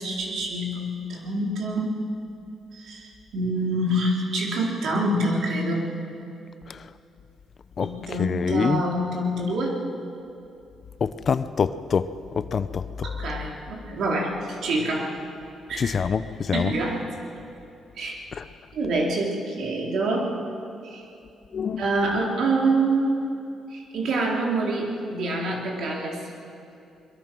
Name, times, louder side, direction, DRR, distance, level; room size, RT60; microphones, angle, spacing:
voice 1, 0.0-2.0 2.7-5.9 7.8-9.8 13.0-15.2 15.7-16.0 16.5-17.1 18.0-18.2 18.7-20.3 20.8-21.1 21.8-23.2 23.7-26.3, right 2 dB, 70° right, -1 dB, 3.9 m, -26 dB
voice 2, 8.2-8.8 11.0-12.1 12.4-13.1 15.8-16.7 18.4-18.5 21.5-21.8, left 6 dB, 45° left, 13 dB, 0.8 m, -25 dB
22.5 x 22.0 x 6.2 m, 2.6 s
cardioid pair, 90°, 0 cm